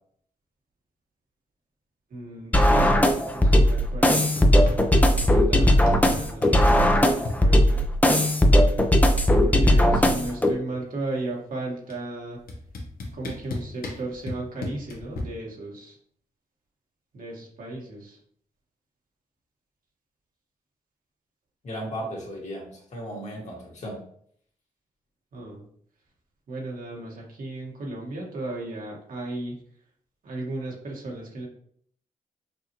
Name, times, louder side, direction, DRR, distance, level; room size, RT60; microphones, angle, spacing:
voice 1, 2.1-4.3 5.1-7.9 9.4-12.4 13.1-16.0 17.1-18.2 25.3-25.6 26.5-29.6 30.2-31.5, right 2 dB, 70° right, -2 dB, 1.5 m, -35 dB
sound 1, 2.5-10.5, equal, 10° left, 0.5 m, -18 dB
sound 2, 4.4-5.3 5.6-7.4 8.6-8.7 9.0-9.4 9.7-11.0 11.9-12.0 12.5-15.2, left 3 dB, 80° left, 1.0 m, -35 dB
voice 2, 21.6-24.0, equal, 50° left, -2 dB, 1.7 m, -35 dB
5.9 x 2.5 x 3.0 m, 0.62 s
cardioid pair, 75°, 15 cm